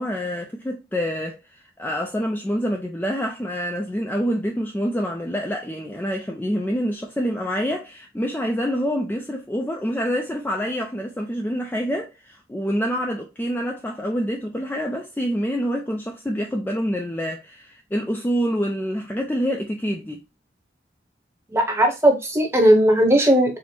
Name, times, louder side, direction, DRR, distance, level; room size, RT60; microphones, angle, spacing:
voice 1, 0.0-20.2, equal, 10° left, 0.3 m, -26 dB
voice 2, 21.5-23.6, right 1 dB, 15° right, 0.9 m, -17 dB
4.4 x 2.1 x 4.2 m
head